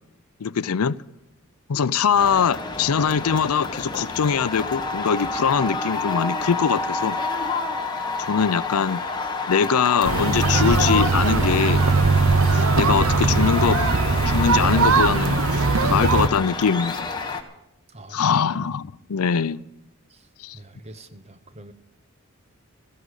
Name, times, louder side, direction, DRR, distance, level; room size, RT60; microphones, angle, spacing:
voice 1, 0.4-1.0 1.7-7.2 8.2-9.0 9.5-11.8 12.5-13.8 14.3-17.1 18.1-19.6 20.4-20.6, left 6 dB, 90° left, 0.5 m, -22 dB
sound 1, 2.2-17.4, left 4 dB, 20° left, 1.3 m, -29 dB
sound 2, 10.0-16.3, right 4 dB, 75° right, 0.7 m, -20 dB
voice 2, 20.5-21.7, right 1 dB, 30° right, 0.8 m, -44 dB
14.5 x 11.0 x 8.2 m
head